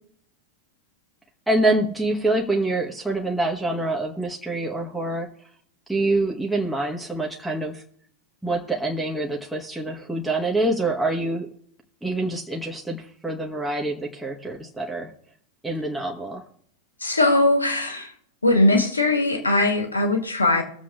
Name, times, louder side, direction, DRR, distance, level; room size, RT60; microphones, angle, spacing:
voice 1, 1.5-5.3 5.9-7.8 8.4-11.5 12.0-15.1 15.6-16.4, right 2 dB, 5° right, -1 dB, 1.3 m, -25 dB
voice 2, 17.0-18.1 18.4-20.6, left 2 dB, 80° left, 2 dB, 2.1 m, -20 dB
22.0 x 7.4 x 2.4 m, 0.63 s
figure-of-eight pair, 90°, 0 cm